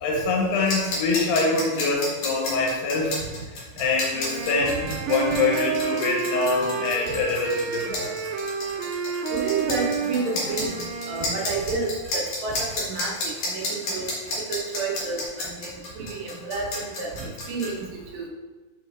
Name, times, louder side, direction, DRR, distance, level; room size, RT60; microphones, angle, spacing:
voice 1, 0.0-3.2 3.8-8.1, left 3 dB, 75° left, -1 dB, 3.1 m, -24 dB
sound 1, 0.7-17.7, left 2 dB, 55° left, 2.1 m, -32 dB
sound 2, 4.1-11.6, right 6 dB, 90° right, 2.1 m, -30 dB
voice 2, 9.3-13.1 13.5-14.1 14.5-15.7 16.0-17.1 17.5-18.3, right 3 dB, 70° right, -2 dB, 2.2 m, -30 dB
6.1 x 4.4 x 3.6 m, 1.2 s
omnidirectional pair, 4.8 m